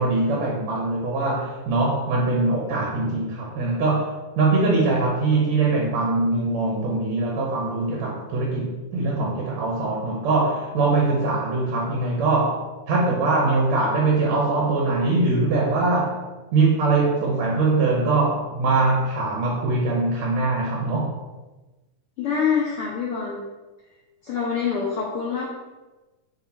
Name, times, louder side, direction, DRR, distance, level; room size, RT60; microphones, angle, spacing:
voice 1, 0.0-16.1 16.5-21.2, right 3 dB, 65° right, -1 dB, 1.9 m, -22 dB
voice 2, 22.2-23.4 24.2-25.4, left 6 dB, 80° left, -4 dB, 1.2 m, -25 dB
7.2 x 3.7 x 4.2 m, 1.2 s
omnidirectional pair, 3.9 m